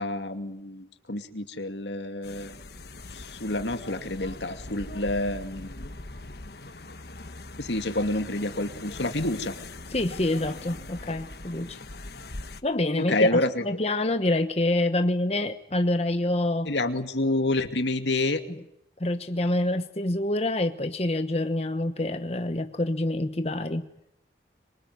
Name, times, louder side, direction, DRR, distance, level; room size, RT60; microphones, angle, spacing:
voice 1, 0.0-2.5 3.1-5.9 7.6-9.5 13.0-13.7 16.6-18.4, left 2 dB, 80° left, 7 dB, 2.5 m, -28 dB
sound 1, 2.2-12.6, left 2 dB, 60° left, 1.4 m, -41 dB
voice 2, 9.9-11.8 12.6-16.7 18.5-18.6 19.0-23.9, left 1 dB, 35° left, 8 dB, 1.1 m, -27 dB
26.0 x 23.5 x 9.6 m, 0.79 s
head